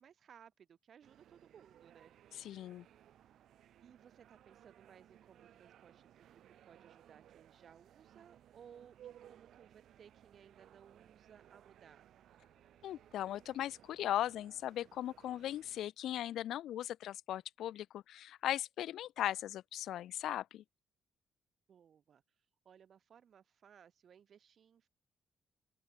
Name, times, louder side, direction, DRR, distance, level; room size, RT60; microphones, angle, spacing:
voice 1, 0.0-2.1 3.8-12.1 21.7-22.2 22.6-24.9, right 8 dB, 55° right, 4.0 m, -61 dB
sound 1, 1.0-15.8, right 11 dB, 70° right, 6.2 m, -62 dB
voice 2, 2.4-2.8 12.8-20.6, left 12 dB, 80° left, 0.3 m, -38 dB
open air
cardioid pair, 90°, 0 cm